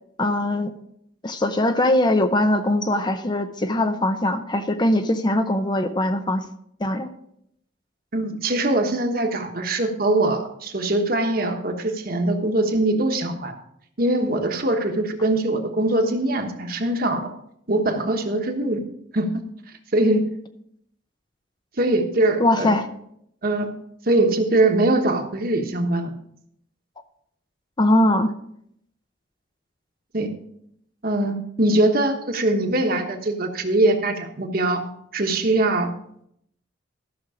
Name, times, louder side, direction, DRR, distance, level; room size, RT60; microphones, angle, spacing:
voice 1, 0.2-0.7 1.2-6.4 6.8-7.1 22.4-22.9 27.8-28.3, left 1 dB, 25° left, 9 dB, 0.6 m, -21 dB
voice 2, 8.1-13.6 14.0-17.3 17.7-18.8 19.1-19.4 19.9-20.2 21.8-22.7 23.4-23.7 24.1-26.1 30.1-30.3 31.0-34.8 35.1-35.9, right 2 dB, 50° right, 4 dB, 1.2 m, -22 dB
13.0 x 6.2 x 4.9 m, 0.73 s
head